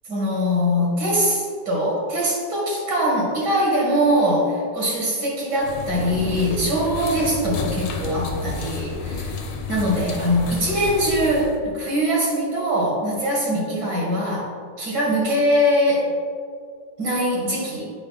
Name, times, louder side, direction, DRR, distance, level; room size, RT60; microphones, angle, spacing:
voice 1, 0.1-9.4 9.7-14.5 14.8-16.1 17.0-17.8, equal, 70° right, -4 dB, 2.6 m, -22 dB
sound 1, 5.6-11.6, left 4 dB, 85° left, 1.6 m, -30 dB
8.9 x 5.1 x 4.0 m, 2.1 s
omnidirectional pair, 1.9 m